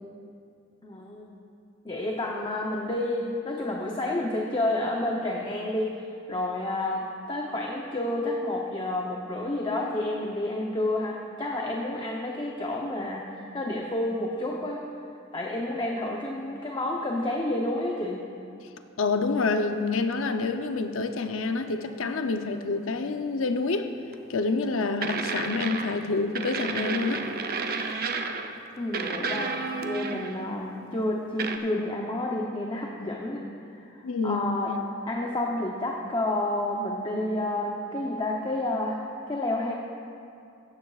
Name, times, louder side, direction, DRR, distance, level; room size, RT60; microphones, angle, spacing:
voice 1, 0.8-1.3 1.8-6.0 6.3-14.8 15.3-18.2 28.8-33.5 33.7-33.9 34.2-34.7 35.1-39.0 39.3-39.7, left 1 dB, 25° left, -1 dB, 0.7 m, -30 dB
voice 2, 19.0-23.9 24.3-27.2 34.0-34.5, left 3 dB, 80° left, 7 dB, 0.6 m, -27 dB
sound 1, 24.1-24.3 25.0-26.1 26.4-28.6 28.9-30.5 31.4-31.6, right 4 dB, 50° right, 0.7 m, -31 dB
16.0 x 13.0 x 2.4 m, 2.5 s
head